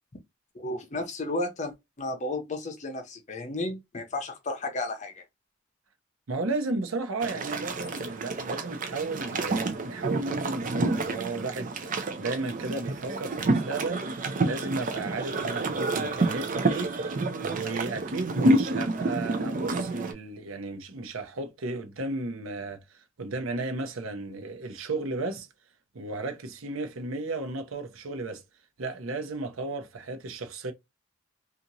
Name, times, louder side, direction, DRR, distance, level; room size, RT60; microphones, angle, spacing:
voice 1, 0.5-1.7 2.0-5.2, left 2 dB, 35° left, 0.6 m, -33 dB
voice 2, 6.3-25.5 25.9-28.4 28.8-30.7, right 3 dB, 80° right, 0.7 m, -34 dB
sound 1, 7.2-20.1, right 2 dB, 40° right, 0.4 m, -29 dB
2.8 x 2.4 x 2.7 m
head